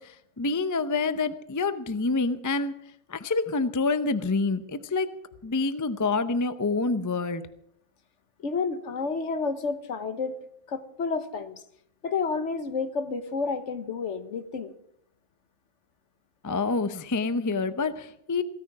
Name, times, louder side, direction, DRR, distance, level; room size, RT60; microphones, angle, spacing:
voice 1, 0.0-2.7 3.1-5.1 5.4-7.4 16.4-18.4, left 3 dB, 25° left, 12 dB, 0.4 m, -27 dB
voice 2, 8.4-11.6 12.0-14.7, left 4 dB, 60° left, 11 dB, 1.3 m, -30 dB
17.0 x 13.5 x 6.0 m, 0.73 s
omnidirectional pair, 1.4 m